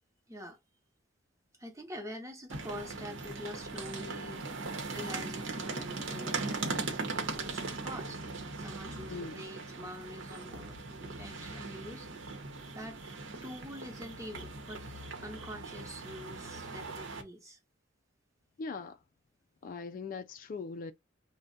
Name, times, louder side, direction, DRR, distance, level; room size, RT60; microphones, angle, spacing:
voice 1, 0.3-0.6 1.6-12.3 12.7-13.0 13.4-14.9 15.2-17.6, equal, 15° right, 0.8 m, -46 dB
sound 1, 2.5-17.2, right 3 dB, 80° right, 0.9 m, -39 dB
voice 2, 9.1-9.4 18.6-19.0 19.6-20.9, left 4 dB, 45° left, 0.3 m, -40 dB
2.4 x 2.2 x 3.9 m
head